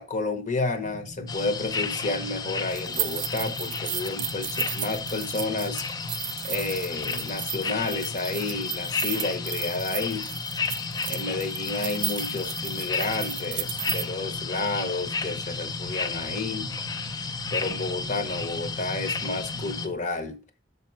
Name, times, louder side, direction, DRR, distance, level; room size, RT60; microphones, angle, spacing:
voice 1, 0.0-5.8 6.4-10.3 11.1-16.7 17.5-20.4, left 3 dB, 45° left, 0.8 m, -31 dB
sound 1, 0.8-19.9, left 2 dB, 85° left, 1.4 m, -40 dB
sound 2, 1.3-19.9, left 5 dB, 20° left, 0.4 m, -33 dB
sound 3, 2.7-14.0, right 14 dB, 85° right, 0.5 m, -34 dB
6.7 x 4.1 x 4.5 m
head